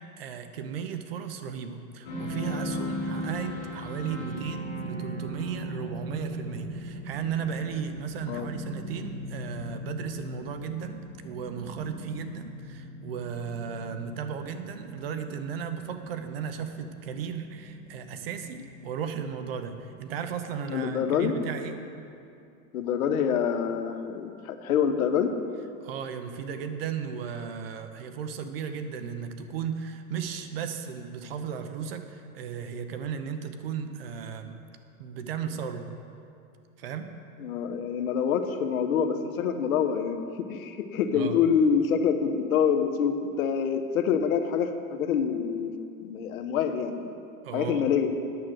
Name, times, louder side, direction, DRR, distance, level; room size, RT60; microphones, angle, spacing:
voice 1, 0.2-21.8 25.8-34.6 35.0-35.9 36.8-37.1 41.1-41.4 47.4-47.9, right 7 dB, 45° right, 7 dB, 0.7 m, -35 dB
sound 1, 2.0-22.0, equal, 20° left, 2.0 m, -39 dB
voice 2, 20.7-21.4 22.7-25.4 37.4-45.7 46.0-47.1 47.5-48.1, left 7 dB, 75° left, 8 dB, 1.0 m, -26 dB
9.5 x 7.4 x 6.3 m, 2.5 s
supercardioid pair, 175°, 42 cm